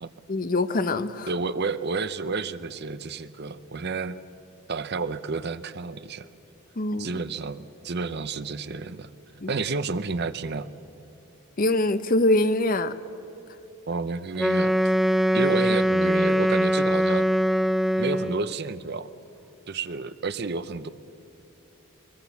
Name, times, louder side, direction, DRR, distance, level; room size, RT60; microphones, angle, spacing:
voice 1, 0.3-1.3 6.8-7.1 9.4-9.5 11.6-12.9 15.3-15.5, left 2 dB, 40° left, 12 dB, 0.7 m, -24 dB
voice 2, 1.3-4.2 4.7-6.3 7.0-9.1 9.5-10.7 13.9-14.8 15.3-17.3 18.0-19.1 19.7-20.9, right 4 dB, 50° right, 14 dB, 0.7 m, -30 dB
Wind instrument woodwind instrument, 14.4-18.5, equal, ahead, 0.5 m, -22 dB
22.5 x 22.5 x 7.1 m, 3.0 s
head